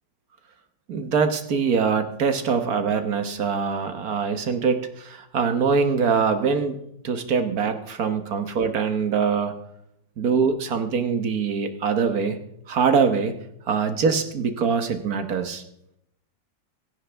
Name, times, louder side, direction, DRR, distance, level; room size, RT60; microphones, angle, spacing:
voice 1, 0.9-6.8 7.0-9.5 10.2-12.4 12.7-13.3 13.7-15.6, right 5 dB, 55° right, 8 dB, 1.5 m, -23 dB
16.0 x 16.0 x 3.4 m, 0.77 s
omnidirectional pair, 2.0 m